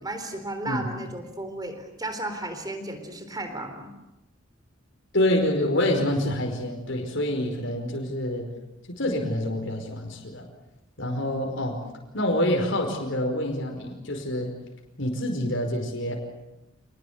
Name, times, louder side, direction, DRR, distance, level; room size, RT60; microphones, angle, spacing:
voice 1, 0.0-3.9, right 2 dB, 20° right, 7 dB, 3.8 m, -34 dB
voice 2, 5.1-8.5 8.9-10.5 11.0-11.8 12.1-14.6 15.0-16.1, left 1 dB, 60° left, 2 dB, 5.1 m, -26 dB
28.0 x 19.5 x 8.6 m, 0.94 s
head